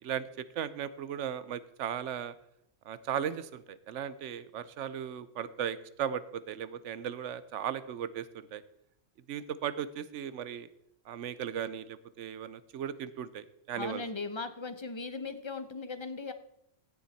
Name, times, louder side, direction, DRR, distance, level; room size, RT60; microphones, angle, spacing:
voice 1, 0.0-2.3 2.8-8.6 9.3-10.7 11.1-14.0, right 9 dB, 80° right, 16 dB, 1.0 m, -37 dB
voice 2, 13.8-16.3, left 4 dB, 30° left, 10 dB, 0.7 m, -38 dB
15.5 x 7.3 x 4.1 m, 0.77 s
omnidirectional pair, 1.2 m